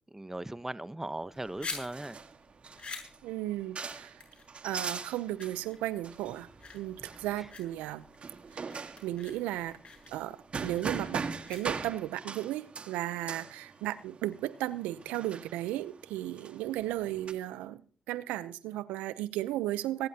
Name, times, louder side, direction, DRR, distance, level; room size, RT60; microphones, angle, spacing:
voice 1, 0.1-2.2, right 1 dB, 15° right, 1.0 m, -38 dB
sound 1, 1.2-12.1, left 4 dB, 45° left, 6.6 m, -47 dB
sound 2, 1.4-17.3, right 5 dB, 50° right, 1.6 m, -42 dB
voice 2, 3.2-4.2 4.6-6.5 6.7-8.0 9.0-9.8 10.1-11.2 11.5-17.8 18.1-20.1, right 14 dB, 90° right, 0.7 m, -35 dB
24.5 x 11.0 x 2.9 m
supercardioid pair, 45°, 2 cm